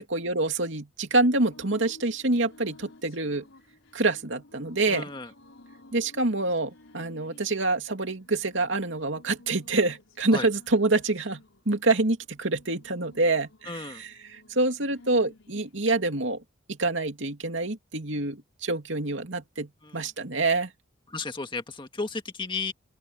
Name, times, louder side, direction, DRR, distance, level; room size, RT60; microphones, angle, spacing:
voice 1, 0.0-3.4 3.9-5.1 5.9-16.4 16.7-20.7, right 2 dB, 70° right, 2.7 m, -26 dB
sound 1, 1.4-15.9, left 2 dB, 80° left, 4.5 m, -54 dB
voice 2, 4.9-5.3 10.3-10.5 13.7-14.0 19.8-20.0 21.1-22.7, left 4 dB, 25° left, 1.7 m, -34 dB
open air
head